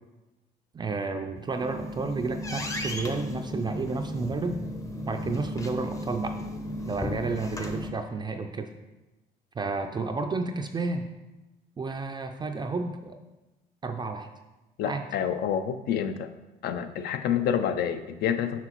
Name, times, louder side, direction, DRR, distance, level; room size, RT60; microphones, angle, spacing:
voice 1, 0.7-4.6 5.1-6.4 6.9-8.7 9.6-11.1 11.8-13.2 13.8-14.3 14.9-15.0, right 3 dB, 25° right, 5 dB, 0.4 m, -31 dB
sound 1, 1.4-7.9, left 1 dB, 20° left, 0.6 m, -35 dB
voice 2, 14.8-16.3 16.6-18.6, left 8 dB, 70° left, 9 dB, 0.5 m, -28 dB
5.9 x 5.7 x 3.0 m, 1.1 s
cardioid pair, 110°, 17 cm